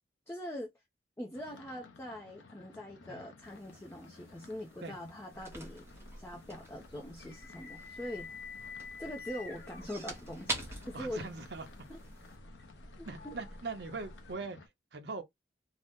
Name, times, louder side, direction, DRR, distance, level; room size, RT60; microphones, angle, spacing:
voice 1, 0.3-0.7 1.2-5.9 6.2-8.3 9.0-11.3 11.9-12.0 13.0-13.4, equal, 15° left, 0.4 m, -43 dB
Fireworks-Finale, 1.3-14.7, left 4 dB, 90° left, 0.6 m, -57 dB
sound 1, 3.4-12.4, right 2 dB, 15° right, 0.8 m, -46 dB
sound 2, 5.3-14.3, left 4 dB, 65° left, 0.9 m, -50 dB
voice 2, 10.9-11.7 13.1-14.6 14.9-15.2, right 3 dB, 65° right, 0.7 m, -41 dB
2.8 x 2.0 x 3.5 m
head